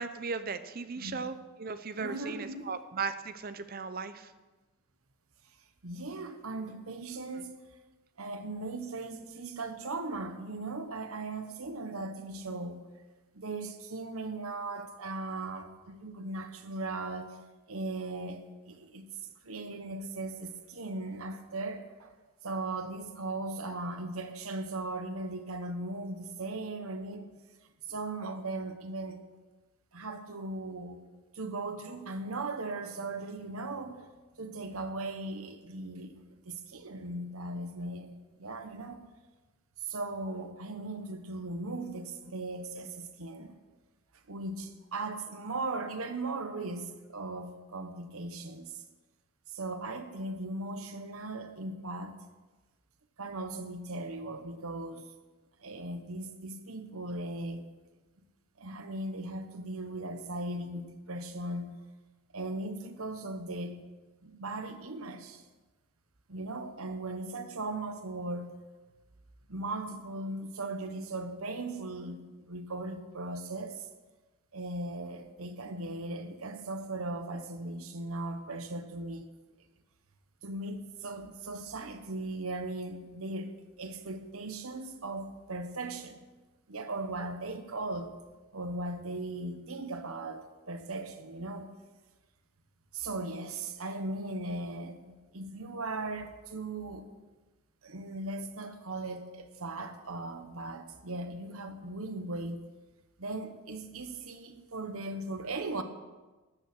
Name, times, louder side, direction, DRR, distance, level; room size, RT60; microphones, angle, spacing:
voice 1, 0.0-4.3, right 5 dB, 40° right, 0.6 m, -37 dB
voice 2, 2.0-2.7 5.8-7.6 8.2-12.9 13.3-17.4 17.7-19.1 19.4-22.1 22.4-27.3 27.8-29.2 29.9-31.0 31.3-34.1 34.4-36.2 36.4-39.1 39.8-43.6 44.3-48.8 49.5-52.2 53.2-55.1 55.6-57.7 58.6-61.8 62.3-63.8 64.2-65.4 66.3-68.6 69.5-73.9 74.5-79.3 80.4-86.3 86.7-88.2 88.5-91.7 92.9-97.1 97.8-102.7 103.2-105.8, right 2 dB, 75° right, 1.2 m, -38 dB
13.0 x 8.5 x 6.1 m
head